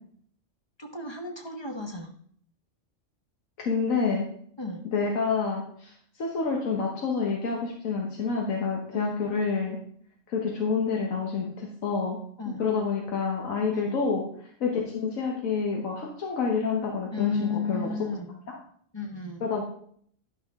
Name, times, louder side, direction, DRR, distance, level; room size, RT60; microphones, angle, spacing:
voice 1, 0.8-2.1 4.6-4.8 8.9-9.2 12.4-12.7 13.7-13.9 17.1-18.4 18.9-19.4, left 4 dB, 20° left, 3 dB, 1.0 m, -33 dB
voice 2, 3.6-4.3 4.9-5.9 6.2-9.8 10.3-12.2 12.6-14.2 14.6-17.9 19.4-19.6, left 5 dB, 85° left, 0 dB, 1.5 m, -28 dB
11.5 x 5.7 x 3.6 m, 0.63 s
omnidirectional pair, 1.4 m